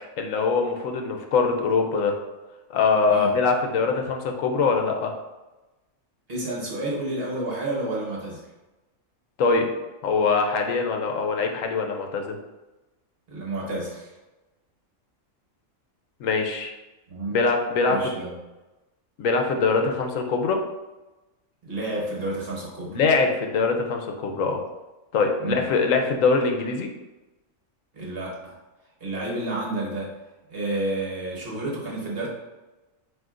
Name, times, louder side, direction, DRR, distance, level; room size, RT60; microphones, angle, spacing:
voice 1, 0.2-2.1 2.7-5.1 9.4-9.7 10.0-12.4 16.2-16.7 17.3-18.0 19.2-20.6 22.9-24.6 25.1-26.9, left 4 dB, 75° left, 3 dB, 1.0 m, -23 dB
voice 2, 6.3-8.5 13.3-14.1 17.1-17.4 17.9-18.4 21.6-23.0 25.4-25.7 27.9-28.5 29.0-30.1 30.5-32.3, right 2 dB, 50° right, -4 dB, 1.3 m, -30 dB
7.6 x 2.8 x 2.5 m, 1.1 s
omnidirectional pair, 1.4 m